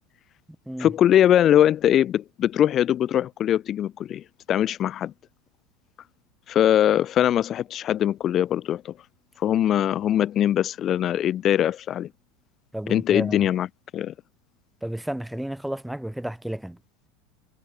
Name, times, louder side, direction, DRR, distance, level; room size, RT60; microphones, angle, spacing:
voice 1, 0.8-5.1 6.5-8.9 9.4-12.1 12.9-13.7 13.9-14.1, left 11 dB, 40° left, 0.8 m, -21 dB
voice 2, 12.7-13.5 14.8-16.8, right 1 dB, 5° right, 1.1 m, -32 dB
hypercardioid pair, 85°, 0 cm